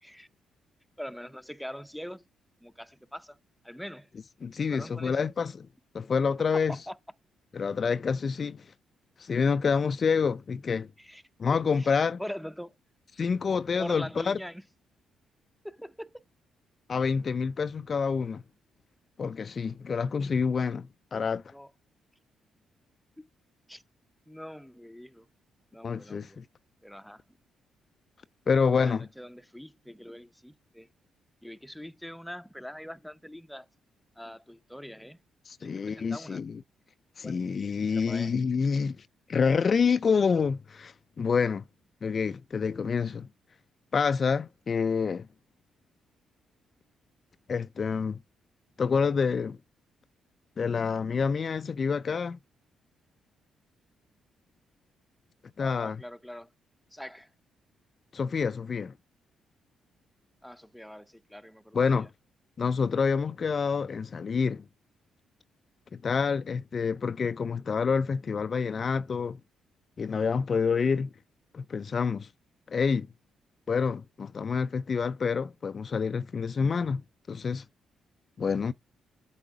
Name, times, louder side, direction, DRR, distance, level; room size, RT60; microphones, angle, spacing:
voice 1, 1.0-2.2 2.6-3.4 3.6-4.1 4.7-5.2 6.5-7.0 11.0-11.2 11.8-12.7 13.8-14.6 15.6-16.1 21.1-21.2 21.5-21.7 23.2-23.3 23.7-23.8 24.3-25.3 25.7-26.4 26.8-27.2 28.8-30.9 31.4-33.7 34.2-35.2 35.6-36.4 37.2-37.4 37.9-38.4 55.6-56.5 56.9-57.3 60.4-62.1, equal, ahead, 0.7 m, -43 dB
voice 2, 4.4-5.7 5.9-6.8 7.5-8.7 9.2-10.9 11.4-12.2 13.2-14.4 16.9-18.4 19.2-21.4 25.8-26.4 28.5-29.1 35.5-36.6 37.2-41.6 42.0-43.3 43.9-45.3 47.5-48.2 48.8-49.6 50.6-52.4 55.6-56.0 58.1-58.9 61.7-62.1 62.6-64.6 65.9-69.4 70.0-71.1 71.5-72.3 72.7-73.1 73.7-77.0 77.3-77.6 78.4-78.7, left 5 dB, 50° left, 0.3 m, -27 dB
8.3 x 3.6 x 4.8 m
hypercardioid pair, 50°, 0 cm